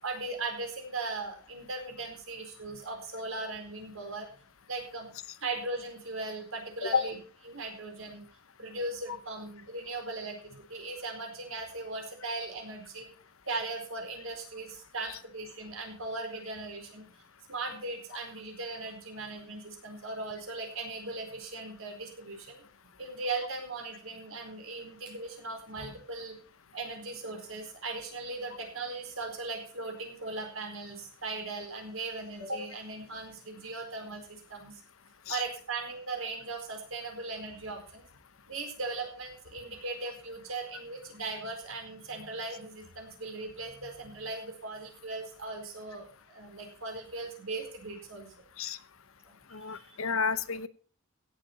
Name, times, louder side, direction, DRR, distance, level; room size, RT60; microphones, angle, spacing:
voice 1, 0.0-4.3 4.7-5.1 5.4-7.2 7.5-8.3 8.6-13.1 13.5-17.1 17.5-22.6 23.0-26.4 26.7-34.8 35.3-38.0 38.5-48.4 49.2-50.0, right 3 dB, 80° right, 4 dB, 4.4 m, -38 dB
voice 2, 49.5-50.7, left 6 dB, 80° left, 14 dB, 0.9 m, -31 dB
16.5 x 7.7 x 5.5 m, 0.41 s
head